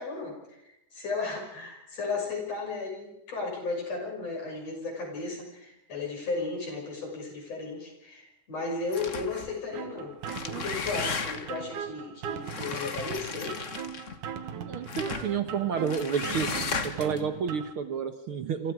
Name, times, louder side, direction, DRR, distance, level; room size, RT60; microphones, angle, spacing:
voice 1, 0.0-10.1 10.4-13.6, left 3 dB, 50° left, 1 dB, 7.3 m, -35 dB
sound 1, 8.9-9.5 10.1-11.6 12.4-14.2 14.9-15.3 15.9-17.2, left 5 dB, 70° left, 0.7 m, -35 dB
sound 2, 9.7-17.7, right 8 dB, 75° right, 2.9 m, -39 dB
voice 2, 14.6-16.5 16.8-18.7, right 7 dB, 60° right, 8 dB, 1.6 m, -30 dB
28.0 x 26.5 x 4.9 m, 0.83 s
omnidirectional pair, 3.7 m